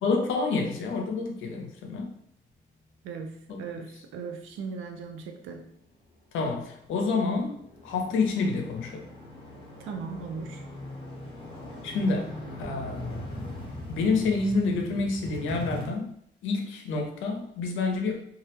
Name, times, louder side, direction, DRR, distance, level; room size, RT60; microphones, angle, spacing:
voice 1, 0.0-2.1 3.5-3.6 6.3-7.6 7.8-9.0 11.8-13.3 13.9-16.1 16.4-18.2, left 3 dB, 80° left, 2 dB, 0.6 m, -28 dB
voice 2, 3.0-5.7 9.8-10.6, right 5 dB, 90° right, 5 dB, 0.4 m, -38 dB
sound 1, 7.4-15.9, left 1 dB, 25° left, 0.8 m, -40 dB
2.3 x 2.1 x 2.9 m, 0.70 s
cardioid pair, 90°, 20 cm